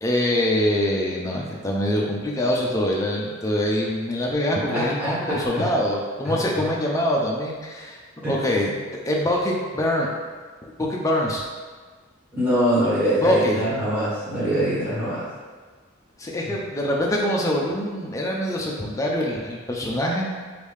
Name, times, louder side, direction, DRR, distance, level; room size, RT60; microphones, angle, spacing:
voice 1, 0.0-8.0 8.3-8.7 9.0-10.1 10.8-11.4 13.2-13.6 16.2-20.3, left 1 dB, 15° left, -2 dB, 0.4 m, -24 dB
voice 2, 4.7-5.7 6.2-6.6 8.2-8.3 8.7-8.8 12.3-15.3 16.5-16.6, right 1 dB, 10° right, -12 dB, 0.9 m, -24 dB
3.4 x 2.6 x 3.2 m, 1.4 s
head